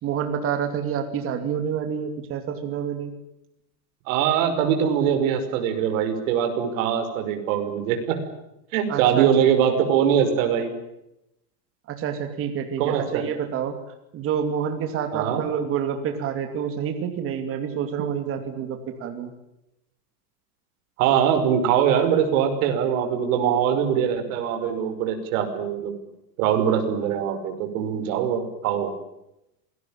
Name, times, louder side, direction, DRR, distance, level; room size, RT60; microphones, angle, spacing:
voice 1, 0.0-3.1 8.9-9.5 11.9-13.7 14.1-19.3, right 8 dB, 25° right, 6 dB, 2.8 m, -28 dB
voice 2, 4.1-8.2 8.7-10.7 12.8-13.2 15.1-15.4 21.0-25.9 26.4-28.9, right 8 dB, 55° right, 6 dB, 5.7 m, -22 dB
27.0 x 19.5 x 9.0 m, 0.86 s
supercardioid pair, 165°, 49 cm